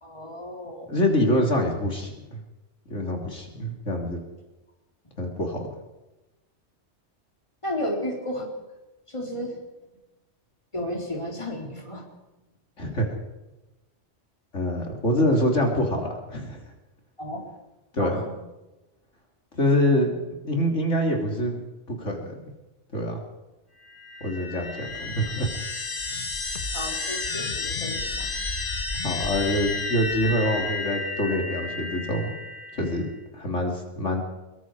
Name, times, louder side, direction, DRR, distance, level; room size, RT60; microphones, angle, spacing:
voice 1, 0.0-0.9 7.6-8.5 9.1-9.6 10.7-12.0 17.2-17.4 18.0-18.3 26.7-28.3, left 1 dB, 25° left, 0 dB, 4.0 m, -33 dB
voice 2, 0.9-2.4 2.9-4.2 5.2-5.7 12.8-13.1 14.5-16.6 17.9-18.2 19.5-20.1 20.4-21.6 21.9-22.4 22.9-23.2 24.2-25.5 29.0-32.3 32.7-33.1 33.3-34.2, left 1 dB, 85° left, 1 dB, 3.6 m, -25 dB
sound 1, 23.9-33.2, left 3 dB, 45° left, 1.6 m, -32 dB
24.0 x 22.5 x 4.9 m, 1.0 s
omnidirectional pair, 1.2 m